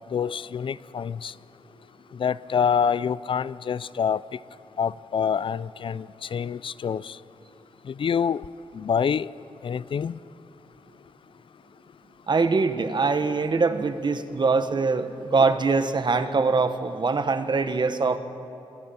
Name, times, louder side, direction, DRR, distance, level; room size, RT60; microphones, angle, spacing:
voice 1, 0.1-1.3 2.1-4.2 4.8-7.2 7.9-8.5 8.7-9.3 9.6-10.2, left 7 dB, 60° left, 19 dB, 0.4 m, -26 dB
voice 2, 12.3-18.2, right 4 dB, 50° right, 10 dB, 1.3 m, -23 dB
27.0 x 20.5 x 5.7 m, 2.9 s
cardioid pair, 65°, 10 cm